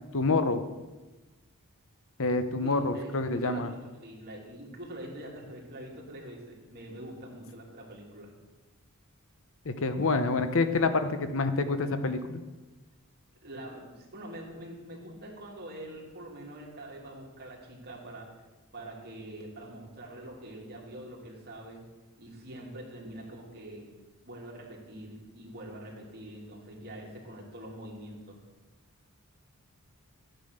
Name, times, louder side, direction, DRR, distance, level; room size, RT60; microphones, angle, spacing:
voice 1, 0.1-0.6 2.2-3.7 9.6-12.4, left 3 dB, 60° left, 10 dB, 0.9 m, -27 dB
voice 2, 2.6-3.1 3.4-8.3 13.4-18.4 18.7-21.9 22.2-23.9 24.2-28.4, right 1 dB, 45° right, -2 dB, 3.0 m, -44 dB
12.5 x 9.1 x 6.6 m, 1.2 s
head